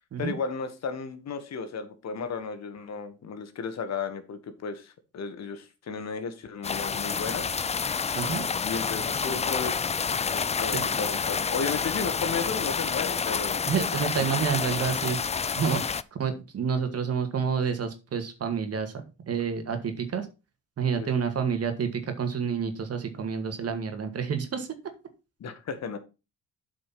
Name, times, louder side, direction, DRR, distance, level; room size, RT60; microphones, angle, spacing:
voice 1, 0.2-7.5 8.6-9.9 10.3-13.6 13.9-14.4 21.0-21.1 25.4-26.0, left 5 dB, 60° left, 10 dB, 1.6 m, -34 dB
sound 1, 6.6-16.0, left 6 dB, 20° left, 0.4 m, -29 dB
voice 2, 8.1-8.4 10.7-10.8 13.7-15.8 16.2-20.3 20.8-24.7, right 6 dB, 55° right, 7 dB, 2.1 m, -29 dB
8.6 x 5.1 x 5.9 m, 0.29 s
cardioid pair, 90°, 30 cm